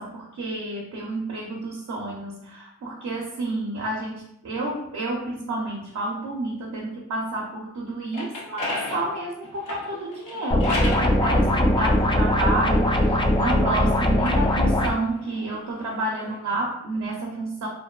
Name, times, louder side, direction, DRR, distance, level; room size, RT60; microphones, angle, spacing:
voice 1, 0.0-17.7, right 2 dB, 60° right, -2 dB, 0.6 m, -30 dB
sound 1, 7.9-11.1 11.9-13.6 14.1-16.4, left 2 dB, 90° left, 0.7 m, -35 dB
sound 2, 10.5-14.9, left 1 dB, 15° left, 0.3 m, -20 dB
2.6 x 2.2 x 2.2 m, 0.78 s
cardioid pair, 55°, 30 cm